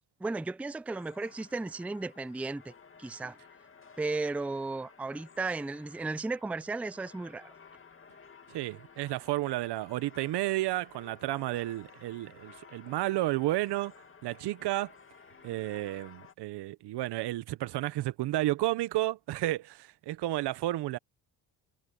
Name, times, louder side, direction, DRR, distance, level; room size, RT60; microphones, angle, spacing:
voice 1, 0.2-2.7 3.0-3.4 4.0-7.5, right 3 dB, 5° right, 0.4 m, -35 dB
sound 1, 0.9-16.3, left 5 dB, 30° left, 2.5 m, -55 dB
voice 2, 8.5-13.9 14.2-14.9 15.4-21.0, right 16 dB, 80° right, 1.0 m, -32 dB
cardioid pair, 75°, 40 cm